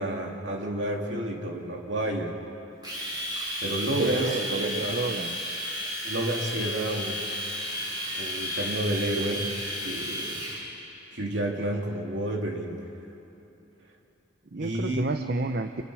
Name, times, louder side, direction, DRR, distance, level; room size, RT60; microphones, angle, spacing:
voice 1, 0.0-2.4 3.6-5.0 6.0-7.2 8.2-9.5 9.8-10.4 11.1-12.9 14.6-15.1, right 1 dB, 70° right, 0 dB, 2.8 m, -30 dB
Domestic sounds home sounds, 2.8-10.6, equal, 20° right, 6.5 m, -33 dB
voice 2, 4.0-5.4 14.5-15.7, right 3 dB, 50° right, 7 dB, 0.7 m, -30 dB
29.5 x 27.0 x 4.9 m, 2.9 s
head